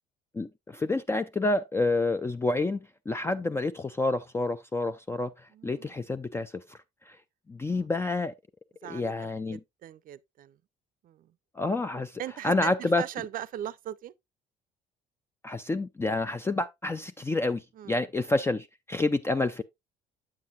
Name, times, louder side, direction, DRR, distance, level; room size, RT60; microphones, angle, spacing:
voice 1, 0.3-5.3 5.6-6.8 7.1-7.2 7.5-8.3 8.9-9.6 11.6-13.0 15.4-19.6, left 2 dB, 15° left, 0.4 m, -29 dB
voice 2, 5.5-6.0 7.6-7.8 8.8-10.6 11.0-11.3 12.2-14.1 17.8-18.0, right 12 dB, 55° right, 0.5 m, -40 dB
8.6 x 7.5 x 2.5 m
cardioid pair, 110°, 17 cm